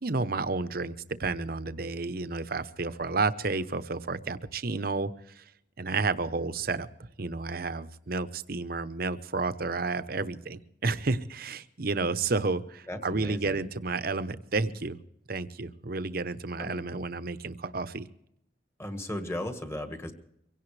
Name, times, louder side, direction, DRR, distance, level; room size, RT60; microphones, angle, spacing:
voice 1, 0.0-0.9 1.2-5.1 5.4-5.5 5.8-6.9 7.2-15.0 15.3-18.1, right 3 dB, 55° right, 13 dB, 0.9 m, -31 dB
voice 2, 12.9-13.6 16.6-16.7 18.8-20.1, left 1 dB, 15° left, 6 dB, 1.6 m, -36 dB
24.5 x 17.0 x 3.3 m, 0.76 s
head